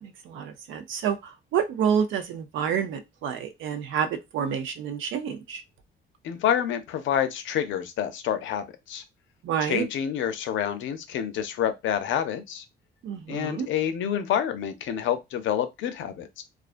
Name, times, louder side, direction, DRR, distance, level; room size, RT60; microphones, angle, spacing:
voice 1, 0.0-5.6 9.4-9.9 13.0-13.7, right 8 dB, 75° right, 0.5 m, -28 dB
voice 2, 6.2-9.0 9.6-12.6 13.3-16.4, left 9 dB, 75° left, 0.5 m, -28 dB
2.4 x 2.3 x 2.4 m
cardioid pair, 90°, 20 cm